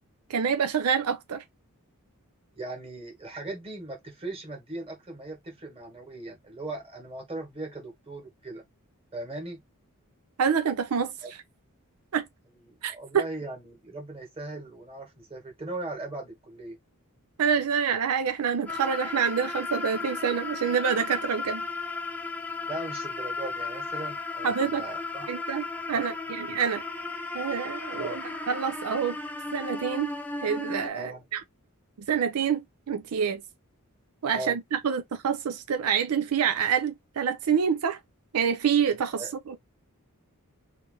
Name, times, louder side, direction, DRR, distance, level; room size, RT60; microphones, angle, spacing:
voice 1, 0.3-1.4 10.4-11.1 12.1-12.2 12.8-13.3 17.4-21.6 24.4-24.8 25.3-26.8 27.3-28.2 28.5-29.2 29.5-30.1 30.4-31.4 32.1-32.6 32.9-33.4 34.2-38.0 38.3-39.6, right 7 dB, 85° right, 0.5 m, -27 dB
voice 2, 2.6-8.6 9.1-9.6 11.2-11.3 12.7-16.8 22.6-25.3 25.9-26.0 27.9-28.2 30.9-31.2 34.3-34.6 39.1-39.3, right 2 dB, 25° right, 1.8 m, -38 dB
sound 1, 18.7-30.9, left 3 dB, 5° left, 0.5 m, -35 dB
3.2 x 3.2 x 3.3 m
head